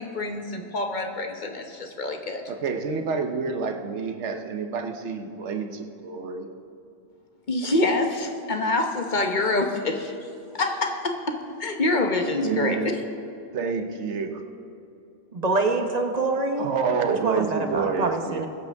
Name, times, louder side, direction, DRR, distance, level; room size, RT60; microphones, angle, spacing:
voice 1, 0.0-2.4 7.5-10.1 10.5-12.8, left 2 dB, 40° left, 4 dB, 1.1 m, -26 dB
voice 2, 2.5-6.5 12.4-13.0 13.5-14.4 16.6-18.5, right 5 dB, 65° right, 5 dB, 1.2 m, -28 dB
voice 3, 15.3-16.7 17.1-18.5, right 3 dB, 35° right, 4 dB, 1.0 m, -25 dB
21.0 x 8.0 x 3.5 m, 2.7 s
omnidirectional pair, 1.3 m